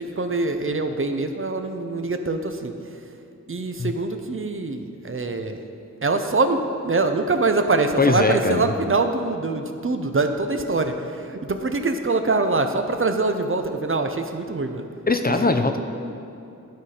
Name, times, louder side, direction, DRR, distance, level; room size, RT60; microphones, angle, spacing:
voice 1, 0.0-2.7 3.5-5.6 6.0-14.8 15.4-15.7, right 3 dB, 40° right, 6 dB, 0.6 m, -24 dB
voice 2, 8.0-8.7 15.1-15.8, left 3 dB, 30° left, 6 dB, 0.5 m, -20 dB
11.5 x 4.2 x 4.9 m, 2.7 s
wide cardioid pair, 55°, 31 cm